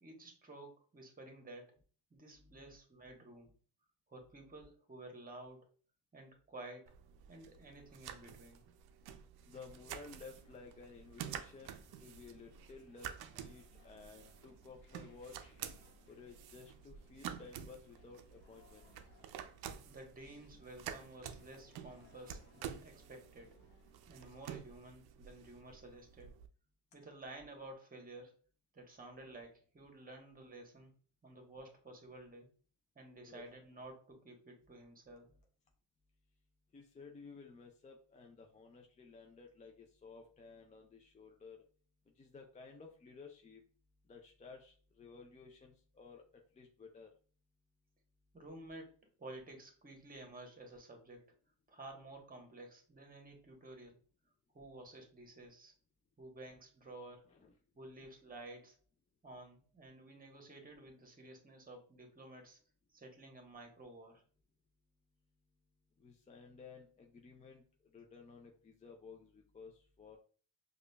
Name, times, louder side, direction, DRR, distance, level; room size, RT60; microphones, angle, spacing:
voice 1, 0.0-1.7 2.1-3.5 4.1-5.6 6.1-6.9 7.3-8.6 19.8-23.6 24.1-26.3 26.9-28.3 28.7-30.9 31.2-32.5 32.9-35.3 48.3-51.2 51.7-54.0 54.5-55.7 56.2-57.3 57.7-58.8 59.2-62.6 62.9-64.2, right 2 dB, 20° right, 3 dB, 1.1 m, -53 dB
voice 2, 2.3-2.7 9.5-15.5 16.1-18.8 33.2-33.4 36.7-41.6 42.2-43.6 44.1-46.2 46.6-47.1 57.3-57.5 66.0-67.6 67.9-70.2, left 4 dB, 20° left, 2 dB, 0.3 m, -55 dB
sound 1, 6.9-26.5, right 9 dB, 55° right, 0.5 m, -50 dB
sound 2, 9.5-24.7, left 3 dB, 65° left, 1.1 m, -67 dB
4.8 x 2.5 x 2.2 m, 0.42 s
supercardioid pair, 90°, 45 cm